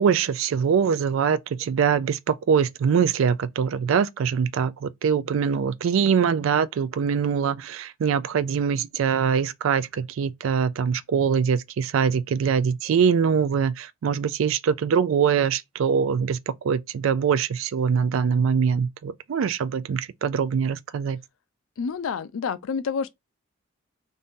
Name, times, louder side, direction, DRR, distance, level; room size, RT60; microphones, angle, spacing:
voice 1, 0.0-21.2, right 6 dB, 75° right, 0.3 m, -23 dB
voice 2, 21.8-23.1, left 6 dB, 80° left, 0.4 m, -28 dB
2.6 x 2.6 x 3.6 m
head